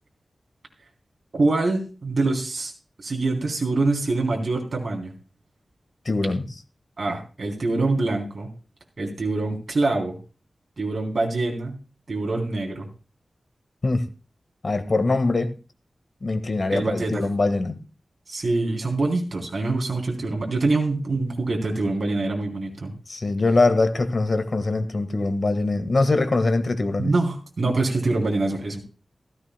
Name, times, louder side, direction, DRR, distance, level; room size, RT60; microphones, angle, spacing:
voice 1, 1.3-2.7 3.0-5.1 7.0-8.5 9.0-10.2 10.8-11.8 12.1-12.9 16.7-17.2 18.3-22.9 27.0-28.8, right 2 dB, 60° right, 3.4 m, -25 dB
voice 2, 6.0-6.5 13.8-14.1 14.6-15.5 16.2-17.8 23.1-27.1, left 2 dB, 55° left, 1.6 m, -22 dB
16.0 x 15.0 x 2.2 m
wide cardioid pair, 70°, 0 cm